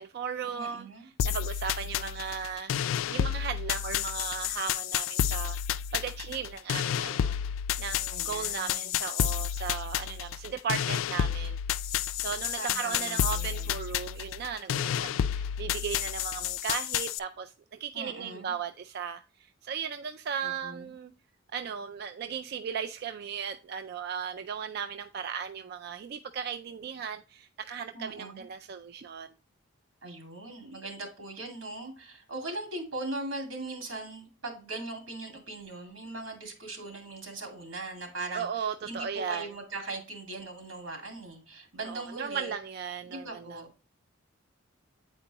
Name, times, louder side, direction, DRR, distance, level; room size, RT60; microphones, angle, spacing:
voice 1, 0.0-0.9 1.2-5.6 5.9-7.4 7.8-11.6 12.2-21.1 21.5-29.3 38.3-39.5 41.9-43.6, right 7 dB, 50° right, 0.3 m, -36 dB
voice 2, 0.5-1.1 8.1-9.0 12.6-13.8 17.9-18.5 20.4-20.9 27.9-28.5 30.0-42.6 43.0-43.8, right 2 dB, 85° right, 2.0 m, -40 dB
sound 1, 1.2-17.2, left 9 dB, 80° left, 0.3 m, -31 dB
8.4 x 4.5 x 2.9 m
head